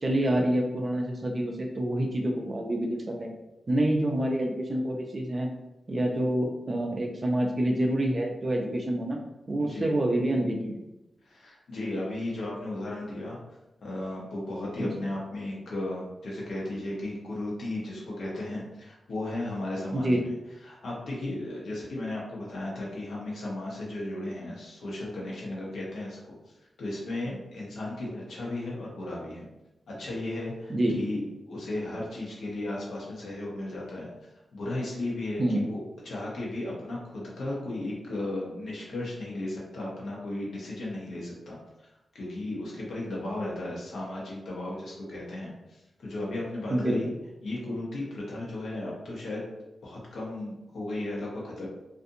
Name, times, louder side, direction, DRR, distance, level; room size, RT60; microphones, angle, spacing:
voice 1, 0.0-3.3 3.7-5.5 5.9-9.2 9.5-10.8 14.8-14.9 19.9-20.2 30.7-31.0 35.4-35.6 46.7-47.0, right 1 dB, 30° right, 2 dB, 0.3 m, -27 dB
voice 2, 9.6-9.9 11.2-13.4 13.8-20.3 20.6-26.4 26.8-29.5 29.9-34.1 34.5-41.6 42.1-47.1 47.4-49.4 49.8-51.7, left 1 dB, 80° left, -4 dB, 0.9 m, -35 dB
2.5 x 2.5 x 2.6 m, 0.98 s
wide cardioid pair, 175°, 0 cm